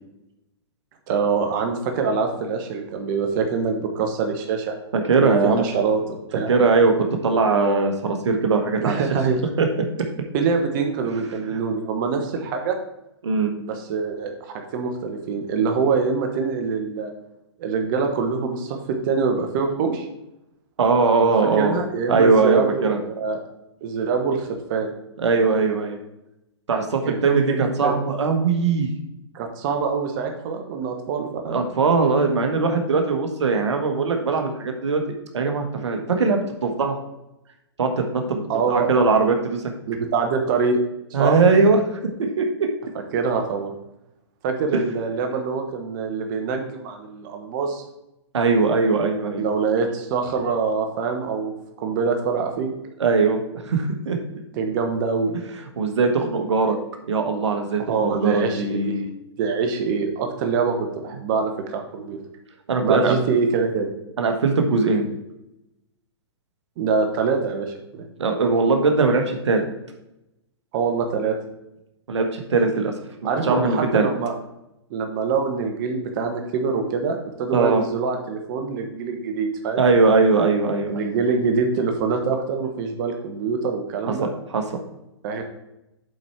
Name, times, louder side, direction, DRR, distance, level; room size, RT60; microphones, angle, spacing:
voice 1, 1.1-4.7 5.2-6.5 8.8-9.4 10.3-12.8 13.6-17.1 17.6-20.1 21.6-23.4 23.8-24.9 27.0-27.9 29.3-31.6 38.5-38.9 39.9-40.8 41.2-41.4 43.1-43.7 44.4-47.8 49.4-52.7 54.6-55.3 57.9-59.0 59.4-62.2 62.8-63.9 66.8-68.0 70.7-71.4 73.2-74.3 74.9-79.8 80.9-84.3 85.2-85.4, right 5 dB, 45° right, 4 dB, 1.2 m, -24 dB
voice 2, 4.9-5.7 6.5-9.0 9.6-9.9 11.5-11.6 13.2-13.5 20.8-21.8 22.1-23.0 25.2-26.0 26.7-28.9 31.5-35.0 35.3-37.0 37.8-38.4 38.7-39.6 41.1-42.7 44.7-44.8 48.3-49.4 53.0-54.2 55.8-56.8 57.1-59.1 62.7-63.1 64.2-65.1 68.2-69.6 72.1-72.9 73.4-74.1 77.5-77.8 79.8-80.9 84.1-84.8, right 4 dB, 80° right, 4 dB, 1.3 m, -20 dB
7.9 x 4.4 x 4.5 m, 0.89 s
hypercardioid pair, 135°, 15 cm